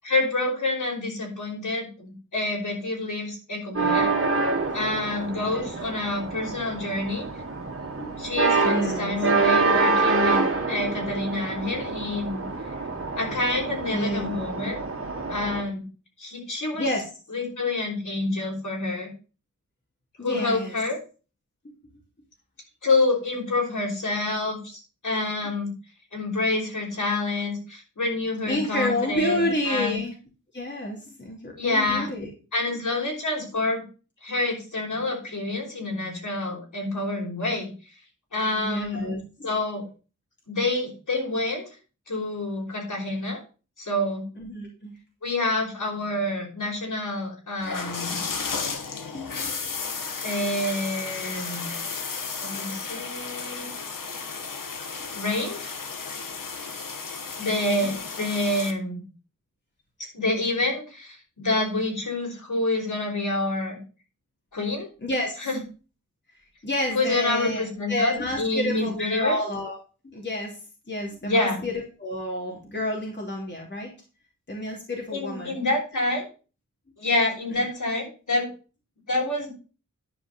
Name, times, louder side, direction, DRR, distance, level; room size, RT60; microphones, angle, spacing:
voice 1, 0.0-4.1 4.7-7.2 8.2-10.4 10.7-12.4 13.2-14.8 15.3-15.8 16.2-16.8 17.3-19.1 20.2-21.0 22.8-25.7 26.1-30.0 31.6-32.1 32.5-33.8 34.2-37.7 38.3-39.1 39.4-39.8 40.5-41.7 42.1-43.4 43.8-44.2 45.2-48.2 50.2-51.7 52.4-53.7 55.1-55.7 57.4-59.0 60.1-63.8 64.5-64.9 65.4-65.6 66.9-69.4 71.2-71.6 75.1-76.3 77.0-78.5 79.1-79.5, left 2 dB, 70° left, -1 dB, 5.4 m, -27 dB
sound 1, 3.7-15.6, right 3 dB, 45° right, 2.1 m, -26 dB
voice 2, 8.6-9.2 13.9-14.3 16.8-17.1 20.2-20.8 28.5-30.1 30.5-32.3 38.6-39.5 44.4-44.9 49.1-49.5 57.8-58.0 65.0-65.5 66.6-69.8 70.0-70.6 70.9-73.9 74.5-75.6 77.5-77.6, left 1 dB, 35° left, -1 dB, 2.8 m, -29 dB
sound 2, 47.6-58.7, left 5 dB, 90° left, 1.4 m, -33 dB
11.0 x 5.1 x 6.7 m, 0.34 s
wide cardioid pair, 95°, 32 cm